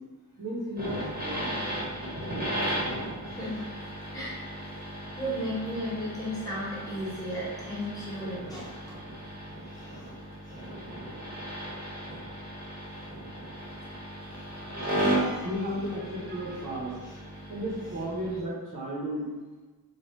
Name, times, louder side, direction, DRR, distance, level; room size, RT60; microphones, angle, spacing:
voice 1, 0.4-1.6 14.9-16.9 17.5-19.3, right 1 dB, 55° right, -6 dB, 1.1 m, -33 dB
sound 1, 0.8-18.4, equal, 25° right, 1.1 m, -36 dB
voice 2, 4.1-4.4 5.1-8.9 9.6-10.1 10.4-10.8 11.7-11.8 13.6-13.8 14.8-15.5 16.3-16.6 17.0-17.2, equal, 10° left, -8 dB, 1.1 m, -36 dB
2.8 x 2.5 x 3.3 m, 1.3 s
cardioid pair, 110°, 38 cm